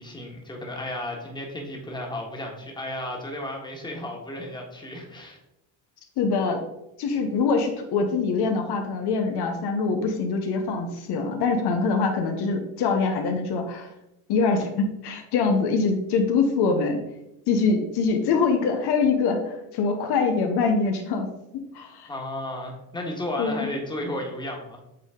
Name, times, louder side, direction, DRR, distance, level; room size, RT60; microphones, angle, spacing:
voice 1, 0.0-5.4 22.1-24.8, left 1 dB, 10° left, 0 dB, 1.5 m, -33 dB
voice 2, 6.2-6.6 7.0-13.9 14.3-17.0 17.5-19.4 19.7-21.3 21.5-22.1 23.4-23.7, left 4 dB, 75° left, 4 dB, 1.0 m, -24 dB
7.9 x 3.8 x 3.6 m, 0.87 s
cardioid pair, 110°, 40 cm